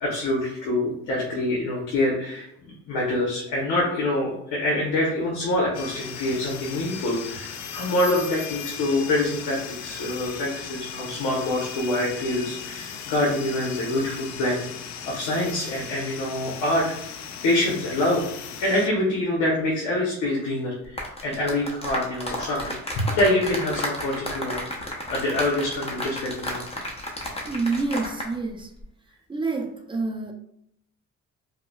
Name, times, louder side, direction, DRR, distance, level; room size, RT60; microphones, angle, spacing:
voice 1, 0.0-2.5 2.9-14.6 15.1-16.9 17.4-18.2 18.6-24.6 25.1-26.6, left 1 dB, 90° left, -3 dB, 0.9 m, -25 dB
sound 1, 5.7-18.9, left 8 dB, 65° left, 0.4 m, -37 dB
sound 2, 20.8-28.3 28.6-28.8, left 1 dB, 20° left, 0.8 m, -33 dB
voice 2, 27.5-28.7 29.3-30.3, right 3 dB, 15° right, 4 dB, 0.5 m, -27 dB
4.6 x 2.2 x 2.3 m, 0.75 s
cardioid pair, 90°, 30 cm